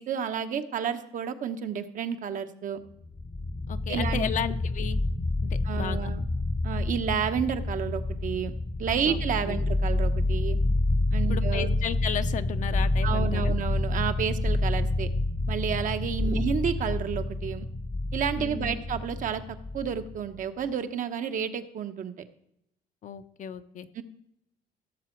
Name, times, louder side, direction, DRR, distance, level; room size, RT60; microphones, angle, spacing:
voice 1, 0.0-2.8 3.9-4.3 5.6-6.3 6.6-8.5 8.8-10.6 11.1-11.8 13.0-15.1 15.5-17.7 18.1-19.4 19.7-22.1 23.9-24.0, right 7 dB, 50° right, 8 dB, 0.9 m, -30 dB
sound 1, 3.0-20.4, left 2 dB, 20° left, 0.8 m, -28 dB
voice 2, 3.7-5.0 5.4-6.1 9.1-9.2 9.5-9.7 11.3-13.6 16.2-16.4 18.4-18.8 23.0-23.9, left 8 dB, 50° left, 10 dB, 0.7 m, -34 dB
16.5 x 6.8 x 4.5 m, 0.77 s
cardioid pair, 110°, 17 cm